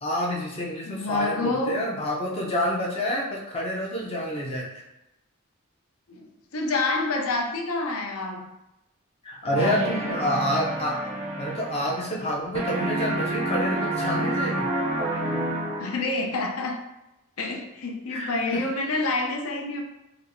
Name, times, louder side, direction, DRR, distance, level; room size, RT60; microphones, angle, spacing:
voice 1, 0.0-4.8 9.2-11.0 11.4-14.7 18.1-18.7, equal, 25° left, -2 dB, 0.5 m, -28 dB
voice 2, 0.8-1.8 6.1-8.5 9.4-10.2 15.1-15.3 15.8-16.8 17.4-19.8, left 3 dB, 75° left, 2 dB, 0.6 m, -28 dB
sound 1, 9.5-12.3 12.5-16.2, right 1 dB, 30° right, 0.4 m, -29 dB
4.3 x 2.0 x 2.5 m, 0.91 s
head